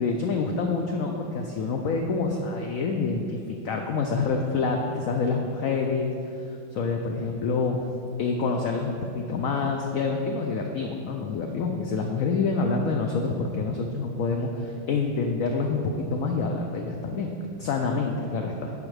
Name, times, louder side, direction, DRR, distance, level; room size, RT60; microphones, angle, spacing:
voice 1, 0.0-6.1 6.7-7.8 8.2-17.3 17.6-18.7, left 4 dB, 80° left, 2 dB, 0.7 m, -27 dB
10.5 x 4.8 x 3.3 m, 2.7 s
omnidirectional pair, 2.0 m